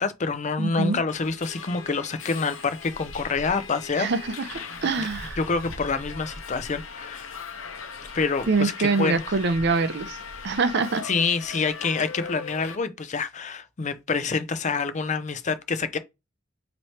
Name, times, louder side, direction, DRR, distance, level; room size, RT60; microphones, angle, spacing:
voice 1, 0.0-4.1 5.0-5.1 5.4-7.3 8.1-9.4 11.0-16.0, left 4 dB, 35° left, 0.5 m, -27 dB
voice 2, 0.6-1.0 4.0-5.4 8.5-10.2 10.4-11.0, right 4 dB, 60° right, 0.6 m, -24 dB
Subway metro underground, 1.1-12.8, left 5 dB, 85° left, 0.9 m, -39 dB
3.1 x 3.0 x 4.1 m
head